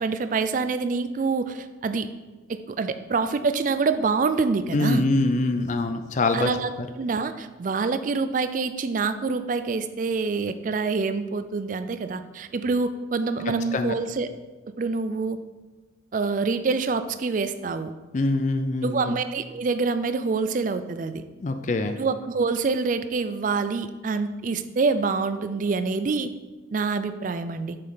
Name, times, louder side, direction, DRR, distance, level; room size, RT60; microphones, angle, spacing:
voice 1, 0.0-2.1 2.5-5.1 6.3-6.7 7.0-14.3 14.8-15.4 16.1-17.9 18.8-21.2 22.0-26.3 26.7-27.8, right 4 dB, 45° right, 11 dB, 0.4 m, -26 dB
voice 2, 4.7-6.5 6.8-6.9 13.7-14.0 18.1-19.2 21.4-22.0, left 2 dB, 40° left, 8 dB, 0.4 m, -24 dB
6.6 x 5.3 x 4.0 m, 1.2 s
head